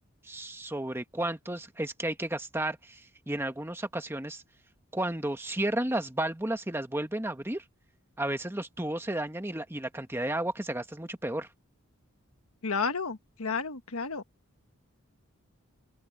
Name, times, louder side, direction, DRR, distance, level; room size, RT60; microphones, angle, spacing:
voice 1, 0.2-4.4 4.9-7.6 8.2-11.5, right 1 dB, 10° right, 1.3 m, -33 dB
voice 2, 12.6-14.2, left 5 dB, 85° left, 1.4 m, -31 dB
open air
head